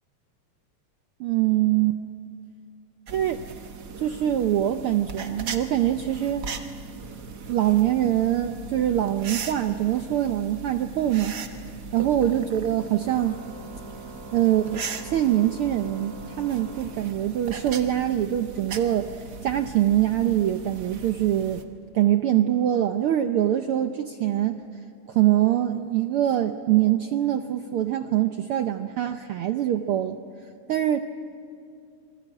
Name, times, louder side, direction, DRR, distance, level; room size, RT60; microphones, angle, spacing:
voice 1, 1.2-2.0 3.1-3.4 4.0-6.5 7.5-11.7 11.9-13.4 14.3-19.2 19.4-21.6 21.9-24.6 25.1-30.2 30.7-31.0, right 12 dB, 75° right, 8 dB, 1.3 m, -24 dB
sound 1, 3.1-21.6, right 5 dB, 50° right, 1.4 m, -38 dB
Organ, 13.0-17.5, right 1 dB, 5° left, 3.0 m, -45 dB
28.0 x 21.0 x 8.7 m, 2.4 s
omnidirectional pair, 3.3 m